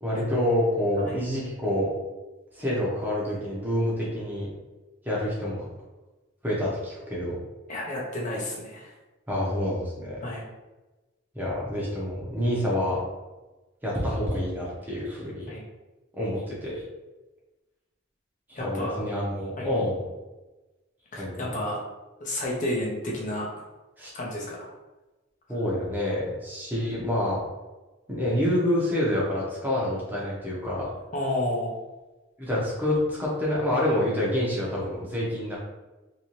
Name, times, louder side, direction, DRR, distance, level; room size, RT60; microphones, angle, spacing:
voice 1, 0.0-1.9 2.5-4.5 5.0-5.7 6.4-7.4 9.3-10.2 11.3-13.0 13.8-15.5 16.2-16.8 18.5-20.0 21.2-21.6 24.0-24.1 25.5-27.4 28.1-30.9 32.4-35.6, left 1 dB, 10° right, -6 dB, 0.8 m, -27 dB
voice 2, 7.7-8.9 10.2-10.4 15.5-15.6 18.5-19.0 19.6-19.7 21.1-21.8 22.2-23.6 24.1-24.7 31.1-31.7, left 1 dB, 40° left, -3 dB, 0.7 m, -31 dB
3.1 x 2.8 x 3.1 m, 1.1 s
head